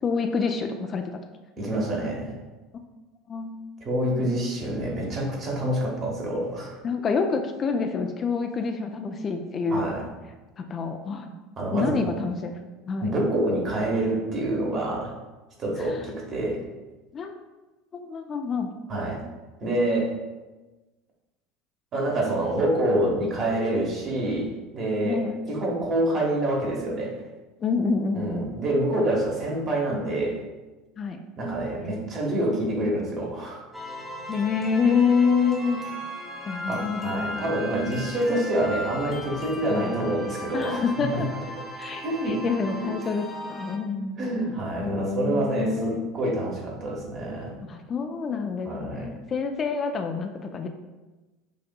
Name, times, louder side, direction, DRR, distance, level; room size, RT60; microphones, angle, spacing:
voice 1, 0.0-1.1 3.3-3.6 6.8-9.9 10.6-11.3 11.7-12.6 12.9-13.1 15.8-16.0 17.1-17.3 17.9-18.7 25.0-25.4 27.6-28.5 31.0-31.2 34.3-35.8 36.5-37.6 39.7-40.0 40.5-41.3 41.8-44.3 44.8-46.0 47.6-50.7, left 5 dB, 35° left, 5 dB, 0.4 m, -27 dB
voice 2, 1.6-2.4 3.8-6.8 9.7-10.1 11.6-12.0 13.0-15.1 15.6-16.6 18.9-19.2 19.6-20.1 21.9-25.2 25.5-27.2 28.1-30.4 31.4-33.6 36.7-40.8 41.1-41.2 42.0-42.4 42.8-42.9 44.2-47.5 48.7-49.1, right 1 dB, 40° right, -2 dB, 1.3 m, -27 dB
sound 1, 33.7-43.8, equal, 5° right, 1.0 m, -37 dB
6.6 x 2.6 x 2.3 m, 1.2 s
hypercardioid pair, 75°, 0 cm